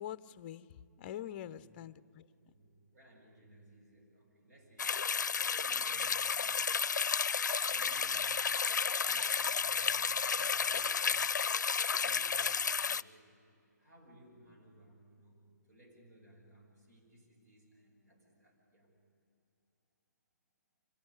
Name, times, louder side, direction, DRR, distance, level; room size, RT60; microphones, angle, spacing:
voice 1, 0.0-2.3, left 11 dB, 35° left, 15 dB, 0.6 m, -45 dB
voice 2, 1.1-1.6 2.5-4.9 5.2-6.7 7.5-11.3 11.9-13.4 13.8-15.4 15.7-18.9, right 1 dB, 60° right, 0 dB, 7.8 m, -61 dB
sound 1, 4.8-13.0, left 6 dB, 80° left, 0.5 m, -32 dB
25.0 x 16.5 x 9.7 m, 2.7 s
hypercardioid pair, 145°, 10 cm